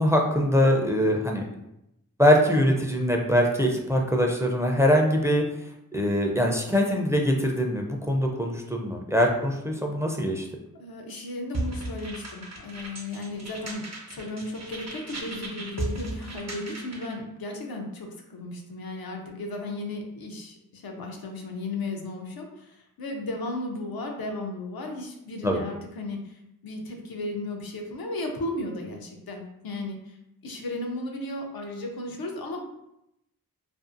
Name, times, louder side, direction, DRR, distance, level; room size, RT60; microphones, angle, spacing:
voice 1, 0.0-1.5 2.2-5.4 5.9-10.5 25.4-25.6, equal, 10° right, 1 dB, 0.4 m, -23 dB
voice 2, 10.8-26.3 26.6-30.0 30.4-32.6, left 2 dB, 85° left, 2 dB, 0.6 m, -35 dB
sound 1, 11.5-17.2, right 2 dB, 45° right, 0.6 m, -36 dB
2.6 x 2.4 x 2.5 m, 0.83 s
cardioid pair, 45°, 35 cm